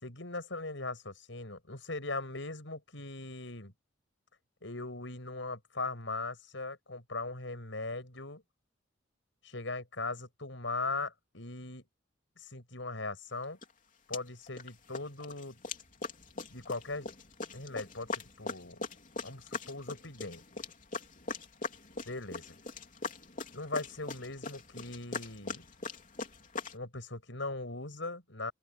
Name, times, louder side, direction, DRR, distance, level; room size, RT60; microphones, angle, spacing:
voice 1, 0.0-3.7 4.6-8.4 9.4-11.8 12.4-13.6 14.1-15.6 16.5-17.1 17.5-18.8 19.2-20.4 22.1-22.6 23.5-25.7 26.7-28.5, left 3 dB, 75° left, 6.3 m, -39 dB
sound 1, 13.6-13.7 14.1-14.7 14.9-26.7, left 4 dB, 45° left, 3.5 m, -41 dB
open air
head